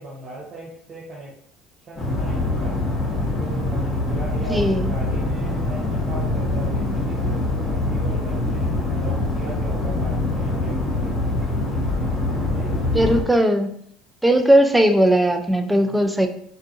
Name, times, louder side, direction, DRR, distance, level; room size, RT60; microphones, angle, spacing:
voice 1, 0.0-1.3 1.9-2.8 3.4-11.2 12.3-12.9 15.8-16.0, right 2 dB, 45° right, -5 dB, 0.7 m, -38 dB
sound 1, 2.0-13.2, left 2 dB, 20° left, 0.9 m, -24 dB
voice 2, 4.5-4.9 12.9-13.7 14.2-16.3, right 1 dB, 10° right, 6 dB, 0.3 m, -18 dB
2.5 x 2.2 x 2.5 m, 0.65 s
hypercardioid pair, 80°, 0 cm